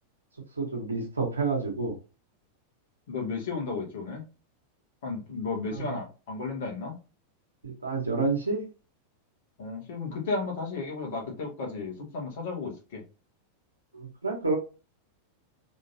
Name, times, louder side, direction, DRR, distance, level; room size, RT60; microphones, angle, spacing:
voice 1, 0.6-2.0 5.7-5.9 7.6-8.7 13.9-14.6, right 3 dB, 80° right, 0 dB, 1.9 m, -29 dB
voice 2, 3.1-4.2 5.0-7.0 9.6-13.0, left 4 dB, 55° left, 1 dB, 2.4 m, -33 dB
5.0 x 3.7 x 2.9 m, 0.31 s
figure-of-eight pair, 90°, 0 cm